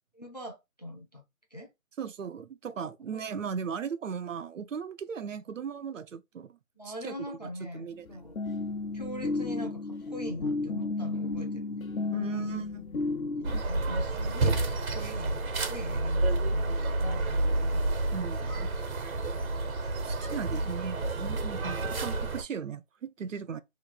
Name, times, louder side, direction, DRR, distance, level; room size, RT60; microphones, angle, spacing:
voice 1, 0.1-1.2 1.5-1.7 3.1-3.2 6.8-8.4 8.9-11.9 12.3-12.5 13.4-17.8 20.5-20.6 21.6-21.7, equal, 30° left, 0.5 m, -42 dB
voice 2, 2.0-6.6 6.8-8.1 12.1-12.9 18.1-18.7 20.0-23.6, right 6 dB, 65° right, 0.5 m, -37 dB
sound 1, 7.9-13.6, left 3 dB, 80° left, 0.9 m, -33 dB
sound 2, 13.4-22.4, right 2 dB, 85° right, 1.2 m, -29 dB
3.1 x 2.8 x 4.0 m
hypercardioid pair, 175°, 41 cm